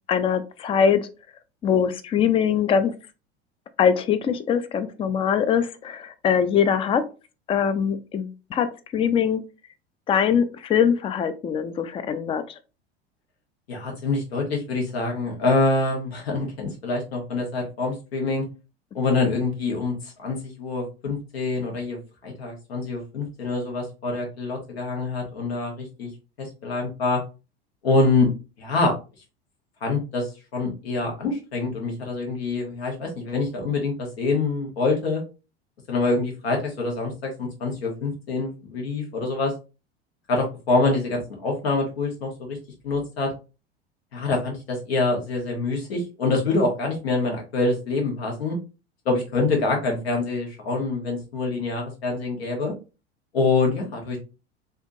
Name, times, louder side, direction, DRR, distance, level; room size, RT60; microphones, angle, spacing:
voice 1, 0.1-1.0 1.6-2.9 3.8-7.0 7.5-8.7 8.9-9.4 10.1-12.4, left 7 dB, 20° left, 13 dB, 0.4 m, -22 dB
voice 2, 13.7-18.4 18.9-22.0 22.2-26.1 26.4-27.2 27.8-28.3 28.6-28.9 29.8-35.2 35.9-39.5 40.3-42.6 42.8-43.3 44.1-48.6 49.0-52.7 53.3-54.2, left 3 dB, 70° left, 1 dB, 1.3 m, -25 dB
3.4 x 2.6 x 2.6 m, 0.31 s
figure-of-eight pair, 80°, 32 cm